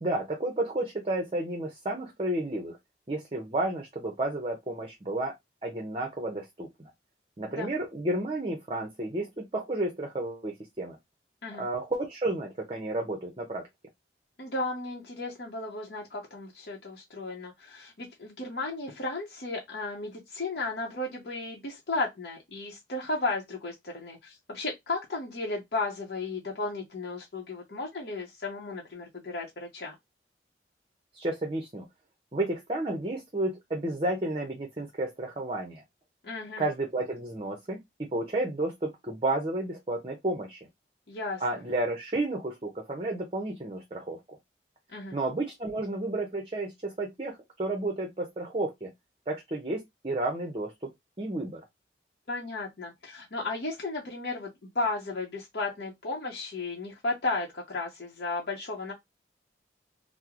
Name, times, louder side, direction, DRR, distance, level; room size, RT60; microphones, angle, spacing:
voice 1, 0.0-2.8 3.1-5.3 5.6-6.9 7.4-11.0 11.6-13.6 31.1-31.9 32.3-35.8 36.6-37.8 38.1-40.6 41.4-44.4 45.1-48.9 49.3-50.7 51.2-51.6, right 2 dB, 30° right, 0.6 m, -31 dB
voice 2, 14.4-29.9 36.2-36.6 41.1-41.4 44.9-45.1 52.3-58.9, left 3 dB, 65° left, 0.7 m, -34 dB
3.0 x 2.0 x 3.6 m
head